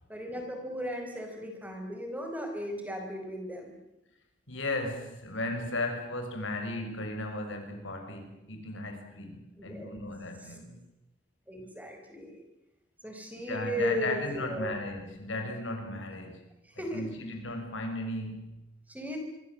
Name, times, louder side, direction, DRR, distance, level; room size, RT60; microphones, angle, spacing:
voice 1, 0.1-3.7 9.6-9.9 11.5-12.4 13.0-14.7 16.8-17.1 18.9-19.2, equal, 10° right, 4 dB, 4.8 m, -36 dB
voice 2, 4.5-10.8 13.4-16.5 16.7-18.6, left 2 dB, 80° left, 4 dB, 6.5 m, -36 dB
26.0 x 24.0 x 7.8 m, 0.91 s
head